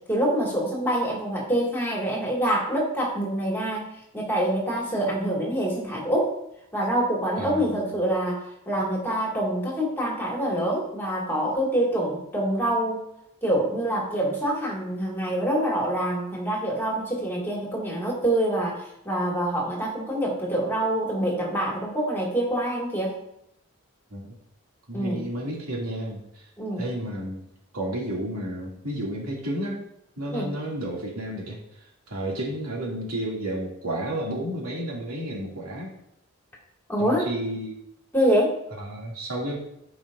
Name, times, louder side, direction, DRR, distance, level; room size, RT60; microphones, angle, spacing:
voice 1, 0.1-3.9 4.1-6.3 6.7-13.0 13.4-23.1 24.9-25.3 26.6-26.8 30.3-30.5 36.9-37.2 38.1-38.6, right 1 dB, 10° left, -4 dB, 2.2 m, -26 dB
voice 2, 24.9-26.5 26.8-27.4 27.7-29.8 30.2-35.9 37.0-37.8 38.8-39.6, right 1 dB, 90° right, -4 dB, 2.6 m, -31 dB
13.5 x 5.0 x 2.6 m, 0.78 s
head